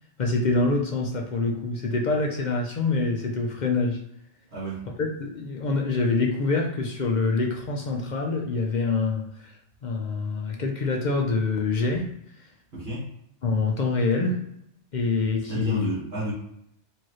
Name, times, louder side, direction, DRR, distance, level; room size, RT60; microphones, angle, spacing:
voice 1, 0.2-4.0 5.0-12.1 12.4-12.5 13.4-14.4 14.9-15.9, left 3 dB, 50° left, 1 dB, 0.6 m, -25 dB
voice 2, 4.5-4.9 12.7-13.1 15.5-16.3, right 2 dB, 60° right, -10 dB, 1.7 m, -30 dB
4.5 x 2.8 x 3.1 m, 0.75 s
omnidirectional pair, 1.2 m